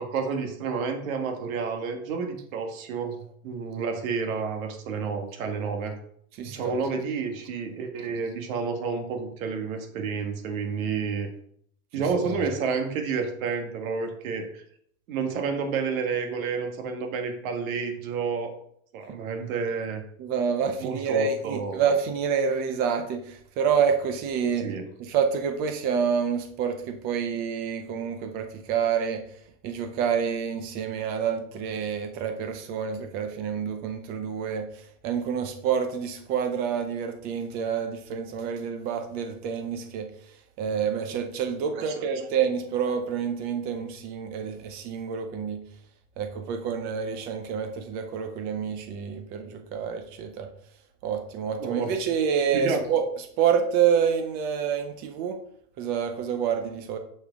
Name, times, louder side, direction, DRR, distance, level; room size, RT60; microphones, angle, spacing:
voice 1, 0.0-5.9 6.4-11.3 11.9-14.6 15.1-18.5 18.9-20.0 20.8-21.8 24.6-24.8 41.7-42.3 51.6-51.9 52.5-52.8, right 5 dB, 65° right, 5 dB, 1.5 m, -30 dB
voice 2, 6.4-6.8 12.2-12.4 20.2-24.7 25.0-29.2 29.6-34.7 35.0-40.1 40.6-45.6 46.2-50.5 51.0-53.0 53.4-55.4 55.8-57.0, right 7 dB, 20° right, 7 dB, 0.5 m, -28 dB
6.3 x 6.0 x 3.5 m, 0.67 s
supercardioid pair, 165°, 44 cm